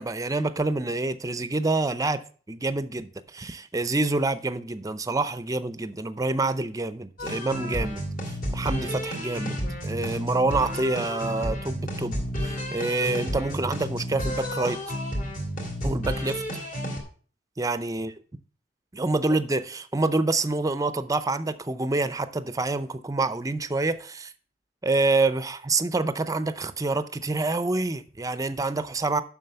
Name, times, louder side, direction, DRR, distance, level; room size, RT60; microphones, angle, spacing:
voice 1, 0.0-8.0 8.5-14.8 15.8-16.4 17.6-18.1 18.9-24.3 24.8-29.2, right 3 dB, 20° right, 0.6 m, -27 dB
sound 1, 7.2-17.0, equal, 50° left, 2.6 m, -31 dB
7.6 x 6.2 x 6.8 m
head